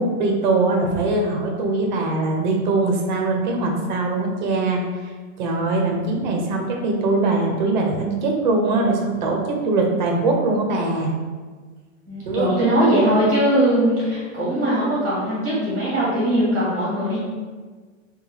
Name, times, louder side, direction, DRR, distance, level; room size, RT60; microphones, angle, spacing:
voice 1, 0.0-5.1 5.4-11.2 12.3-12.7, right 2 dB, 35° right, 1 dB, 0.5 m, -22 dB
voice 2, 12.1-17.2, right 1 dB, 5° right, -9 dB, 1.2 m, -20 dB
5.3 x 2.3 x 3.2 m, 1.5 s
supercardioid pair, 175°, 39 cm